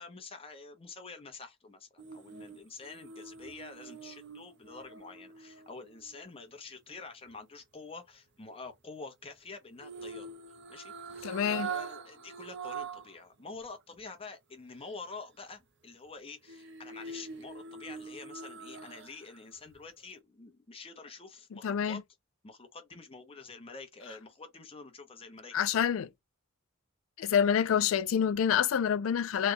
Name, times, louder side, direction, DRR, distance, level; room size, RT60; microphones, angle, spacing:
voice 1, 0.0-10.3 10.7-22.0 22.4-25.5, left 4 dB, 25° left, 0.7 m, -47 dB
sound 1, 2.0-6.2 9.8-13.2 13.6-13.7 16.5-19.4 19.7-19.8, right 5 dB, 55° right, 0.6 m, -43 dB
voice 2, 11.2-11.7 21.5-22.0 25.5-26.1 27.2-29.5, left 8 dB, 65° left, 0.3 m, -27 dB
3.1 x 2.2 x 3.8 m
head